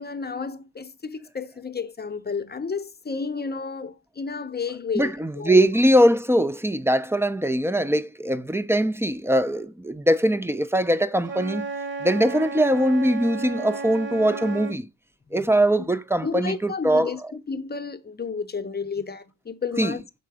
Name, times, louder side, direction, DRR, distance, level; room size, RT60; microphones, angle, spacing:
voice 1, 0.0-5.7 15.4-15.5 16.2-20.0, left 5 dB, 25° left, 0.8 m, -31 dB
voice 2, 4.9-11.7 12.0-14.9 15.3-17.1 19.8-19.9, right 1 dB, 5° right, 0.5 m, -21 dB
Wind instrument woodwind instrument, 11.2-14.8, right 3 dB, 30° right, 1.0 m, -33 dB
6.8 x 3.7 x 4.9 m
cardioid pair, 85°, 38 cm